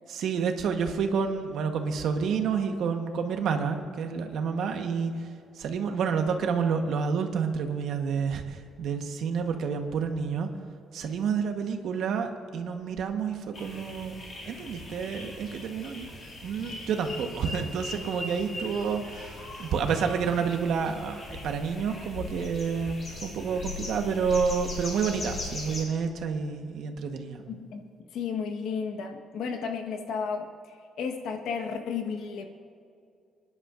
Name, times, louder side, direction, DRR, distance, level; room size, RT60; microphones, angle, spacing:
voice 1, 0.1-5.3 5.6-10.5 10.9-16.1 16.4-27.4, right 6 dB, 70° right, 5 dB, 1.1 m, -29 dB
sound 1, 13.5-25.8, left 3 dB, 35° left, 3.1 m, -40 dB
voice 2, 27.5-27.8 28.1-32.4, left 6 dB, 80° left, 4 dB, 1.3 m, -33 dB
26.0 x 11.0 x 2.5 m, 2.4 s
cardioid pair, 155°, 0 cm